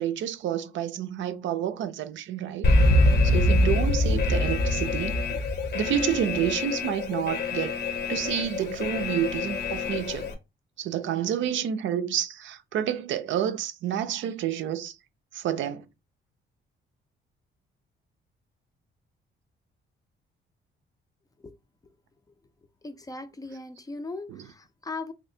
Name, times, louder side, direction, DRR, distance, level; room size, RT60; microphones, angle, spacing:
voice 1, 0.0-2.7 3.2-5.2 5.7-7.8 8.1-10.3 10.8-15.0 15.3-15.9 24.3-24.5, right 10 dB, 70° right, 0.5 m, -29 dB
Alarm, 2.6-10.3, left 2 dB, 60° left, 0.7 m, -24 dB
voice 2, 22.8-25.1, left 3 dB, 20° left, 0.4 m, -38 dB
3.3 x 2.6 x 2.7 m
cardioid pair, 90°, 20 cm